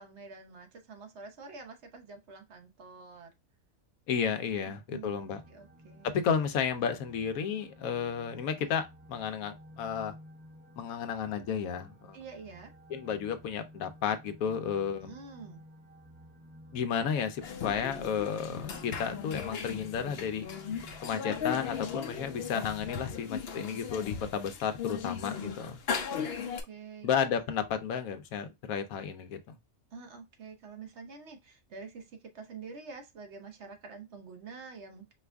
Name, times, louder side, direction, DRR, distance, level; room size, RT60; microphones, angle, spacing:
voice 1, 0.0-3.3 4.9-6.3 12.1-12.7 15.0-15.6 26.1-27.2 29.9-35.1, right 4 dB, 55° right, 1.1 m, -47 dB
voice 2, 4.1-5.4 6.1-10.1 10.8-12.2 12.9-15.2 16.7-20.5 21.0-25.8 27.0-29.6, left 7 dB, 90° left, 1.1 m, -32 dB
sound 1, 5.0-22.9, equal, 10° right, 0.7 m, -53 dB
sound 2, 17.4-26.6, left 7 dB, 55° left, 0.8 m, -37 dB
4.7 x 2.4 x 3.4 m
omnidirectional pair, 1.4 m